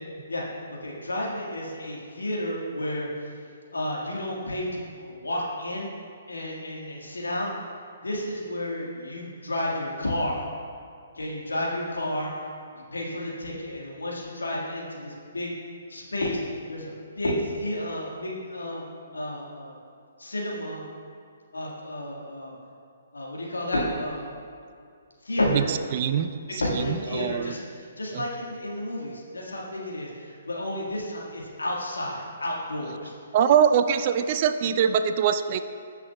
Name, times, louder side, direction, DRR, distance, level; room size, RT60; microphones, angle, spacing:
voice 1, 0.8-3.1 3.7-5.9 6.3-7.5 8.0-10.4 11.2-12.3 12.9-15.5 15.9-16.4 16.7-19.8 20.2-20.8 21.5-22.5 23.1-24.3 25.3-25.7 26.5-27.6 28.0-33.1, left 1 dB, 80° left, -3 dB, 1.7 m, -31 dB
voice 2, 25.5-27.5 28.1-28.3 33.3-35.6, right 8 dB, 40° right, 10 dB, 0.4 m, -23 dB
16.5 x 5.9 x 2.3 m, 2.3 s
figure-of-eight pair, 130°, 0 cm